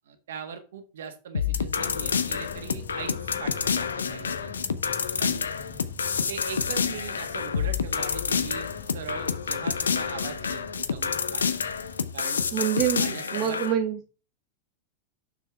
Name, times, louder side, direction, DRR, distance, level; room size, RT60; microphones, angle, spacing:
voice 1, 0.1-4.5 5.2-5.4 6.3-11.6 12.1-12.4 12.9-13.6, right 6 dB, 60° right, 7 dB, 1.4 m, -40 dB
sound 1, 1.3-13.7, left 6 dB, 70° left, 0.6 m, -28 dB
Fixed-wing aircraft airplane, 1.7-12.1, left 6 dB, 45° left, 1.4 m, -44 dB
voice 2, 12.5-14.0, right 10 dB, 35° right, 5 dB, 0.8 m, -26 dB
6.9 x 6.2 x 3.5 m, 0.35 s
figure-of-eight pair, 90°, 0 cm